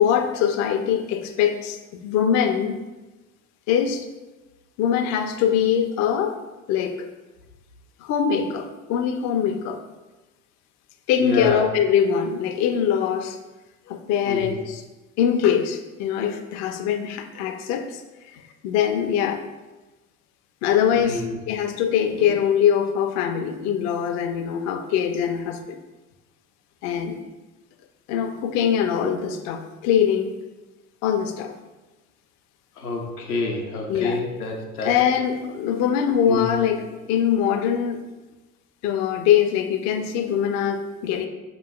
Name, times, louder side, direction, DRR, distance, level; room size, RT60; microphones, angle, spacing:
voice 1, 0.0-2.8 3.7-4.1 4.8-6.4 6.7-7.1 8.0-9.8 11.1-13.4 13.9-14.8 15.2-19.4 20.6-25.8 26.8-27.2 28.1-30.3 31.0-31.5 33.9-34.2 34.8-38.0 38.8-41.3, left 8 dB, 40° left, 5 dB, 0.4 m, -23 dB
voice 2, 11.2-11.6 14.3-14.5 20.9-21.4 32.8-34.9 36.2-36.5, left 3 dB, 90° left, 0 dB, 0.6 m, -28 dB
4.9 x 2.9 x 2.3 m, 1.1 s
figure-of-eight pair, 60°, 43 cm